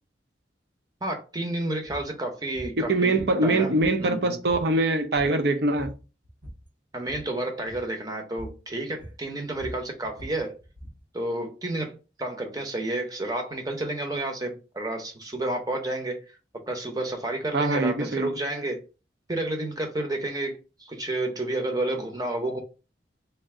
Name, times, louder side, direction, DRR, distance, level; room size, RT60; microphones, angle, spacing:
voice 1, 1.0-3.7 4.0-4.4 6.9-10.6 11.1-16.2 16.5-18.8 19.3-22.6, right 2 dB, 20° right, 0.7 m, -30 dB
sound 1, 1.9-2.1 2.5-2.8 3.2-4.2 4.5-4.7 5.0-5.5 5.7-6.7 7.0-7.3 7.7-7.9 8.4-8.6 9.0-11.0, equal, 80° right, 1.8 m, -42 dB
voice 2, 2.9-5.9 17.5-18.3, right 2 dB, 60° right, 0.6 m, -23 dB
3.4 x 2.6 x 3.6 m
head